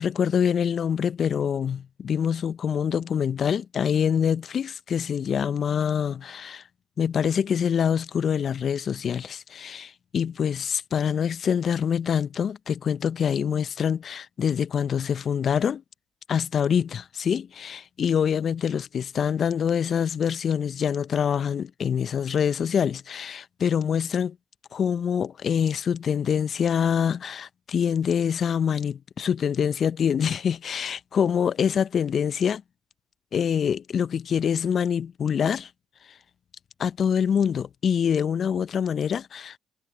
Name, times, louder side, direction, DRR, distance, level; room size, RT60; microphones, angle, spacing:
voice 1, 0.0-6.6 7.0-15.8 16.3-24.4 24.7-32.6 33.3-35.7 36.8-39.6, left 7 dB, 50° left, 0.8 m, -25 dB
hypercardioid pair, 50°, 0 cm